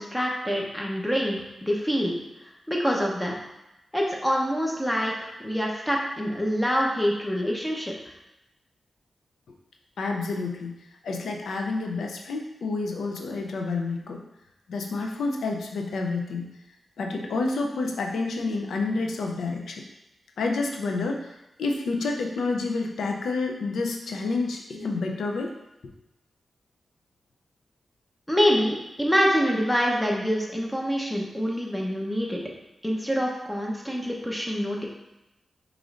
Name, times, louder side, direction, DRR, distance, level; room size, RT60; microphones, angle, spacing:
voice 1, 0.0-2.2 2.4-3.3 3.9-8.1 28.3-32.4 32.8-34.9, equal, 10° left, -1 dB, 0.8 m, -26 dB
voice 2, 10.0-10.7 11.0-14.2 14.7-16.5 17.0-19.8 20.4-21.3 21.6-25.5, left 3 dB, 90° left, 2 dB, 0.5 m, -29 dB
4.9 x 3.1 x 2.5 m, 0.92 s
cardioid pair, 55°, 0 cm